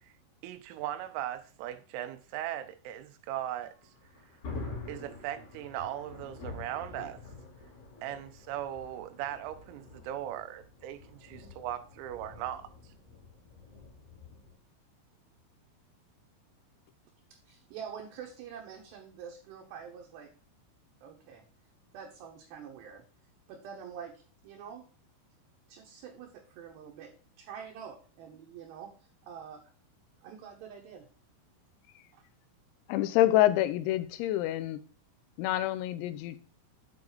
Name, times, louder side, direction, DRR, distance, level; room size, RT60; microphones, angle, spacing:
voice 1, 0.4-3.9 4.9-7.2 8.0-12.9, right 12 dB, 90° right, 3.5 m, -38 dB
Thunder, 3.8-14.6, left 3 dB, 55° left, 4.2 m, -47 dB
voice 2, 17.5-20.3 21.0-21.4 21.9-23.0 23.5-24.8 25.7-28.9 29.2-29.6 30.2-31.1 32.1-32.2, right 7 dB, 75° right, 2.7 m, -46 dB
voice 3, 32.9-34.8 35.4-36.4, left 14 dB, 90° left, 3.4 m, -27 dB
8.7 x 4.9 x 3.9 m
omnidirectional pair, 6.0 m